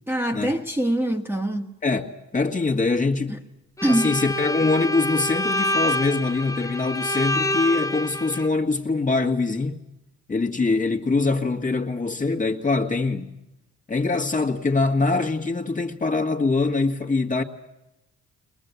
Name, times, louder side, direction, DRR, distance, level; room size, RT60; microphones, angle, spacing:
voice 1, 0.1-1.7 3.3-3.4 3.8-4.2, right 1 dB, 5° right, 1.6 m, -24 dB
voice 2, 1.8-3.4 3.9-9.8 10.3-13.3 13.9-17.4, left 3 dB, 25° left, 1.9 m, -23 dB
Bowed string instrument, 3.8-8.5, left 1 dB, 10° left, 0.8 m, -27 dB
22.5 x 20.5 x 8.3 m
cardioid pair, 90°, 30 cm